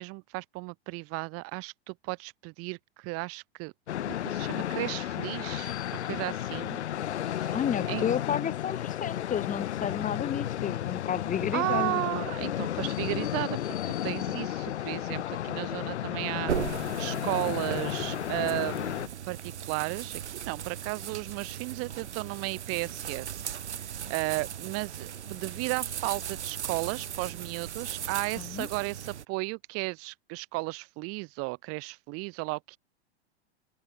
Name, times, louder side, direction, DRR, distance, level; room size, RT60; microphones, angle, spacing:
voice 1, 0.0-3.7 4.1-6.8 7.2-7.6 7.9-8.1 11.5-18.9 19.3-32.8, right 27 dB, 45° right, 1.2 m, -34 dB
sound 1, 3.9-19.1, left 11 dB, 80° left, 2.5 m, -33 dB
voice 2, 7.5-12.0 28.4-28.7, left 9 dB, 25° left, 1.9 m, -31 dB
sound 2, 16.5-29.2, right 9 dB, 85° right, 6.8 m, -38 dB
open air
hypercardioid pair, 110°, 33 cm